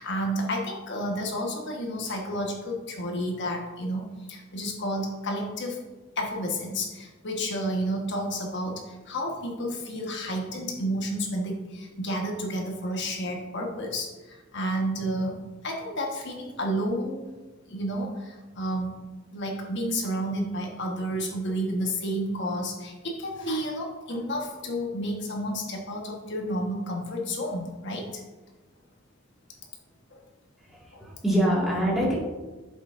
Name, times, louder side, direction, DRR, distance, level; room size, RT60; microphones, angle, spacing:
voice 1, 0.0-5.8 6.2-15.4 15.6-17.3 17.7-19.0 19.3-28.2 30.1-30.2 30.9-31.0, equal, 55° left, 1 dB, 1.4 m, -31 dB
voice 2, 30.6-32.2, equal, ahead, -6 dB, 2.0 m, -25 dB
8.0 x 7.5 x 2.6 m, 1.2 s
head